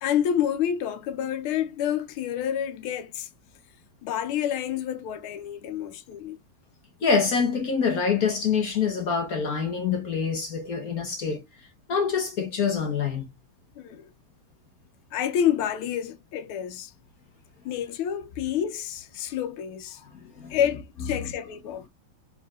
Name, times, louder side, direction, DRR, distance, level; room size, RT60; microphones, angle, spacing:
voice 1, 0.0-3.3 4.0-6.4 13.8-14.1 15.1-16.9 17.6-20.0 20.5-21.8, left 9 dB, 80° left, 1.6 m, -28 dB
voice 2, 7.0-11.4 11.9-13.3 20.0-20.6 21.2-21.3, left 6 dB, 55° left, 1.0 m, -26 dB
4.5 x 4.2 x 2.3 m
omnidirectional pair, 2.3 m